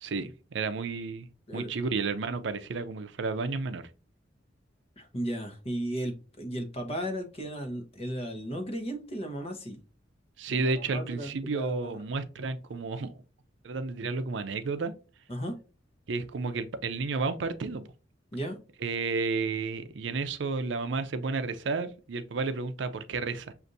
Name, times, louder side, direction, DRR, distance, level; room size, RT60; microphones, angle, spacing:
voice 1, 0.0-1.3 1.5-3.9 10.4-13.1 13.6-14.9 16.1-17.8 18.8-23.5, right 4 dB, 70° right, 0.5 m, -32 dB
voice 2, 5.0-9.8 10.5-12.0 15.3-15.6 18.3-18.6, equal, 35° left, 0.9 m, -35 dB
6.5 x 2.5 x 2.6 m
head